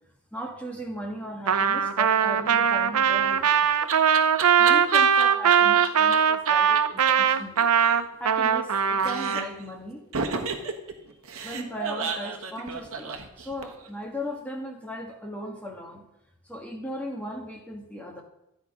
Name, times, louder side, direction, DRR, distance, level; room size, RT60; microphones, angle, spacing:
voice 1, 0.3-3.9 4.6-7.7 8.1-10.0 10.6-11.0 11.4-16.0 16.4-18.2, equal, 5° left, 0 dB, 1.4 m, -37 dB
Trumpet, 1.5-9.5, right 7 dB, 85° right, 0.6 m, -21 dB
Laughter, 3.1-6.2 6.4-6.5 6.7-6.8 7.1-7.2 7.4-8.7 9.0-9.6 10.1-13.9, right 5 dB, 65° right, 1.5 m, -33 dB
13.0 x 8.9 x 5.3 m, 0.85 s
head